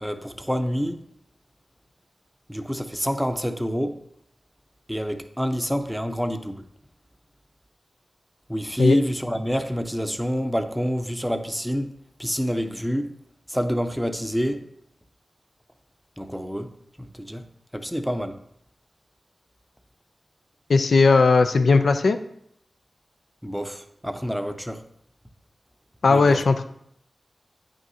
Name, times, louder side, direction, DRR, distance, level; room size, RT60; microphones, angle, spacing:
voice 1, 0.0-1.0 2.5-4.0 4.9-6.6 8.5-13.1 13.5-14.7 16.2-16.7 17.0-17.5 17.7-18.4 23.4-24.8 26.1-26.4, equal, ahead, 0.6 m, -27 dB
voice 2, 20.7-22.2 26.0-26.6, left 4 dB, 80° left, 0.4 m, -17 dB
8.8 x 6.2 x 2.7 m
cardioid pair, 55°, 0 cm